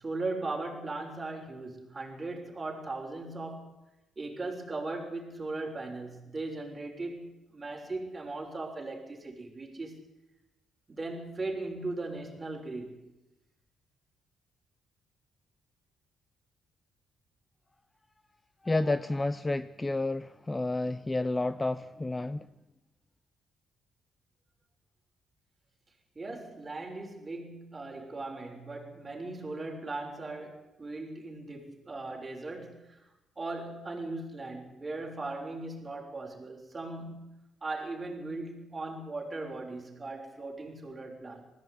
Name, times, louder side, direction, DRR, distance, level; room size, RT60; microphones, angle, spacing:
voice 1, 0.0-3.7 4.2-10.0 10.9-13.2 26.1-33.0 33.4-37.3 37.6-41.5, right 2 dB, 25° right, 6.5 m, -38 dB
voice 2, 18.6-22.5, left 2 dB, 20° left, 0.7 m, -30 dB
19.5 x 16.0 x 9.5 m
cardioid pair, 90°, 0 cm